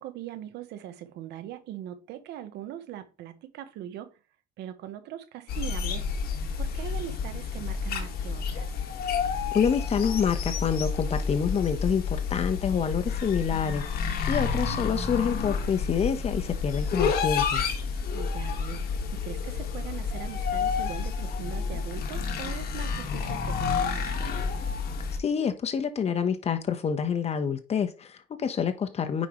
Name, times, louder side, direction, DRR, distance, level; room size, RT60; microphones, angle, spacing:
voice 1, 0.0-4.1 4.6-6.1 6.6-8.7 14.4-14.8 18.1-24.5, right 11 dB, 80° right, 1.1 m, -41 dB
sound 1, 5.5-25.2, left 5 dB, 65° left, 1.6 m, -30 dB
voice 2, 9.5-13.9 14.3-17.6 25.2-29.3, left 7 dB, 40° left, 1.1 m, -27 dB
9.2 x 5.2 x 3.1 m
cardioid pair, 110°, 17 cm